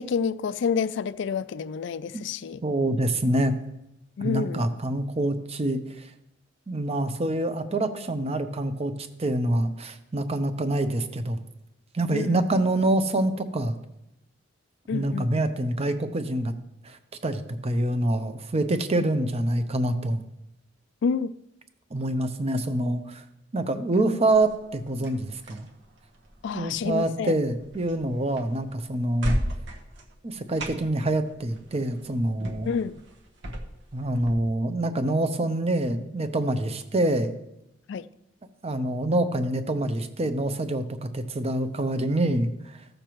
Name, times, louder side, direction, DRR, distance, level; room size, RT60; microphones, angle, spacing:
voice 1, 0.0-2.6 4.2-4.7 12.1-12.5 14.9-15.4 19.0-19.1 21.0-21.3 23.9-24.0 26.4-27.3 32.7-33.0 37.9-38.1, left 6 dB, 70° left, 0.4 m, -29 dB
voice 2, 2.6-3.5 4.2-6.1 6.7-11.4 11.9-13.8 14.9-16.5 16.8-20.2 21.9-23.2 23.5-25.7 26.5-29.4 30.2-32.7 33.9-37.3 38.6-42.5, right 1 dB, 35° right, 0.7 m, -26 dB
sound 1, 24.3-34.3, equal, 70° right, 1.1 m, -37 dB
14.5 x 6.6 x 3.0 m
head